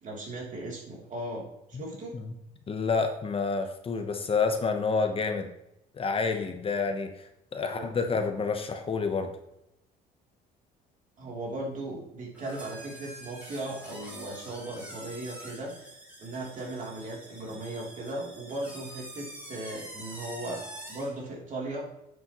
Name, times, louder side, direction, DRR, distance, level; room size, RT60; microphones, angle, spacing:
voice 1, 0.0-2.1 7.6-7.9 11.2-15.7 16.2-20.6 20.9-21.9, right 1 dB, 50° right, -2 dB, 3.2 m, -37 dB
voice 2, 2.7-5.5 6.0-7.1 7.5-9.3, left 4 dB, 35° left, 6 dB, 1.0 m, -28 dB
sound 1, 12.3-21.2, right 1 dB, 10° right, 2.9 m, -46 dB
9.9 x 7.3 x 3.1 m, 0.84 s
cardioid pair, 110°, 17 cm